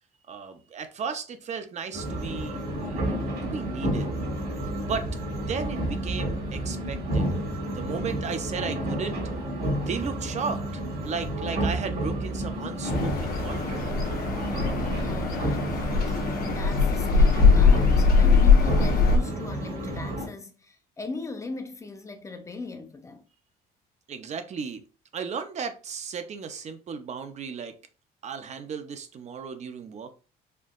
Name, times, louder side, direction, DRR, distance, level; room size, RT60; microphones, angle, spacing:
voice 1, 0.3-4.1 4.8-9.2 9.7-13.9 24.1-24.8 25.1-27.7 28.2-30.1, right 6 dB, 40° right, 0.6 m, -35 dB
sound 1, 1.9-20.3, right 1 dB, 75° right, 2.0 m, -30 dB
sound 2, 12.8-19.2, left 5 dB, 60° left, 1.0 m, -21 dB
voice 2, 15.0-23.2, left 3 dB, 15° left, 0.6 m, -39 dB
4.4 x 2.7 x 2.5 m
cardioid pair, 110°, 17 cm